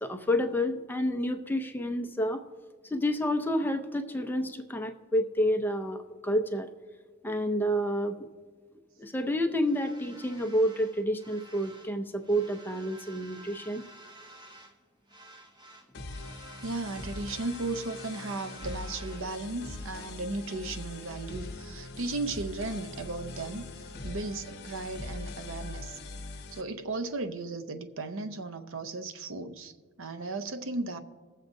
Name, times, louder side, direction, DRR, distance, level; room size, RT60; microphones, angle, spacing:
voice 1, 0.0-2.4 2.8-6.7 7.2-8.2 9.0-13.8, equal, 10° left, 5 dB, 0.5 m, -29 dB
sound 1, 9.6-12.0 12.2-14.8 15.1-19.3, right 1 dB, 20° right, 0.8 m, -51 dB
sound 2, 15.9-26.6, left 2 dB, 50° left, 0.8 m, -42 dB
voice 2, 16.6-26.0 26.5-29.7 30.0-31.0, right 3 dB, 65° right, 8 dB, 0.6 m, -36 dB
20.0 x 7.4 x 2.6 m, 1.5 s
head